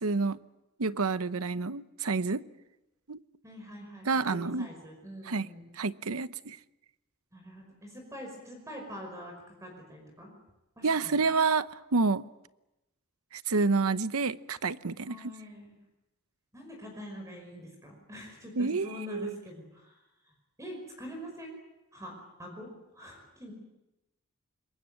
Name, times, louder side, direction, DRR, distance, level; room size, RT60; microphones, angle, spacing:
voice 1, 0.0-0.4 0.8-2.4 3.1-3.2 4.1-4.7 5.3-5.5 5.8-6.6 10.8-12.2 13.3-15.2 18.6-19.3, right 4 dB, 85° right, 0.9 m, -28 dB
voice 2, 3.4-5.7 7.3-9.3 9.6-10.3 10.8-11.3 15.0-15.8 16.5-19.9 20.2-20.3 20.6-21.6 21.9-22.1 22.4-22.7 22.9-23.5, equal, 15° right, 5.4 m, -44 dB
26.5 x 22.5 x 7.7 m
head